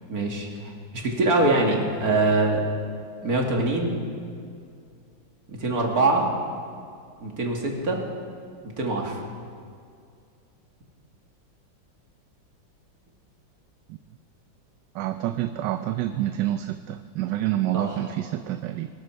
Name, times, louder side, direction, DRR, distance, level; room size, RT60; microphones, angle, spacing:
voice 1, 0.1-2.6 3.2-4.0 5.5-6.3 7.2-8.0 8.6-9.2 17.7-18.0, right 2 dB, 50° right, 0 dB, 2.5 m, -24 dB
voice 2, 14.9-18.9, right 13 dB, 75° right, 10 dB, 1.2 m, -28 dB
24.0 x 12.0 x 4.5 m, 2.3 s
omnidirectional pair, 2.0 m